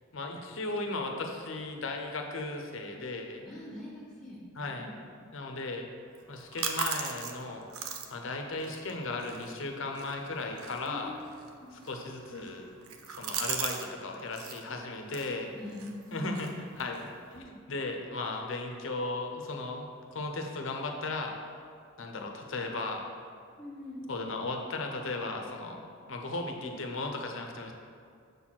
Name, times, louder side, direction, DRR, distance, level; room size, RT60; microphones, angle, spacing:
voice 1, 0.1-3.4 4.5-4.9 5.3-5.9 6.3-11.2 11.7-12.7 13.1-15.5 16.1-16.5 16.8-21.4 22.0-23.1 24.1-25.8 26.1-27.7, left 2 dB, 60° left, 3 dB, 0.8 m, -36 dB
voice 2, 3.4-4.4 4.8-5.2 10.8-11.7 15.5-16.5 23.6-24.1, left 1 dB, 5° left, -5 dB, 1.7 m, -43 dB
sound 1, 6.2-13.9 14.1-14.6 15.1-17.4, right 7 dB, 90° right, 0.7 m, -40 dB
6.8 x 4.2 x 6.0 m, 2.3 s
head